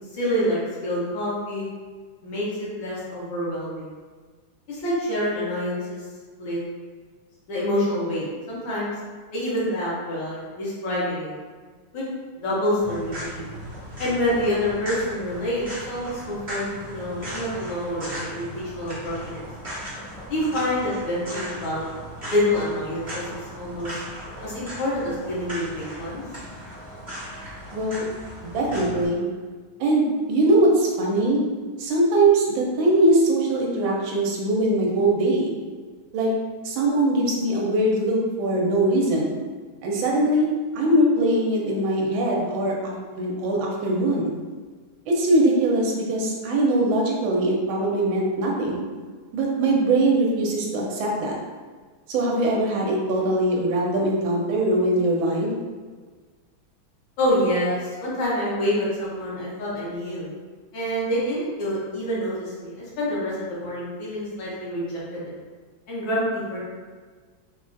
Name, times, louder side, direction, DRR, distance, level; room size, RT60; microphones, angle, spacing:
voice 1, 0.1-1.7 2.2-3.9 4.7-6.1 6.4-6.6 7.5-8.9 9.3-11.3 11.9-12.0 12.4-13.4 14.0-19.4 20.3-21.8 22.3-23.3 23.6-23.9 24.4-26.2 57.2-60.3 60.7-65.3 65.9-66.6, equal, 70° left, -7 dB, 1.6 m, -27 dB
sound 1, 12.8-29.1, equal, 25° right, 0.6 m, -37 dB
voice 2, 27.7-28.0 28.4-29.2 29.8-31.4 31.8-35.5 36.1-36.3 36.6-39.3 39.8-44.3 45.1-48.8 49.3-51.4 52.1-55.5, right 1 dB, 80° right, -2 dB, 1.4 m, -22 dB
3.8 x 2.3 x 2.5 m, 1.5 s
omnidirectional pair, 2.2 m